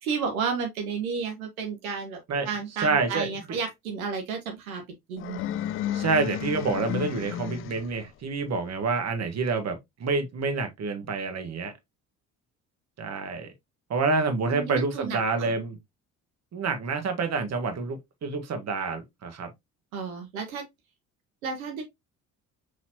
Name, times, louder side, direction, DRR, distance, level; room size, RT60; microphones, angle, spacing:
voice 1, 0.0-4.8 5.1-5.4 14.5-15.5 19.9-20.6 21.4-21.8, right 5 dB, 75° right, 1.0 m, -32 dB
voice 2, 2.8-3.3 5.9-11.7 13.0-13.5 13.9-15.8 16.5-19.5, right 4 dB, 35° right, 1.3 m, -28 dB
sound 1, 5.2-8.1, left 12 dB, 30° left, 0.4 m, -32 dB
5.7 x 3.1 x 2.8 m
figure-of-eight pair, 50°, 43 cm